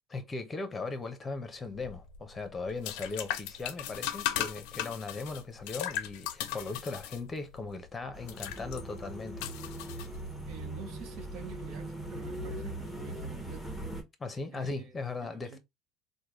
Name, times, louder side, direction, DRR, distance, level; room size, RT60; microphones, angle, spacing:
voice 1, 0.1-9.5 14.2-15.6, left 3 dB, 20° left, 0.8 m, -38 dB
sound 1, 1.7-10.6, left 12 dB, 75° left, 0.4 m, -38 dB
sound 2, 8.1-14.0, right 1 dB, ahead, 1.0 m, -40 dB
voice 2, 10.5-13.7 14.5-15.6, right 6 dB, 65° right, 0.8 m, -48 dB
3.4 x 2.2 x 3.0 m
supercardioid pair, 95°, 0 cm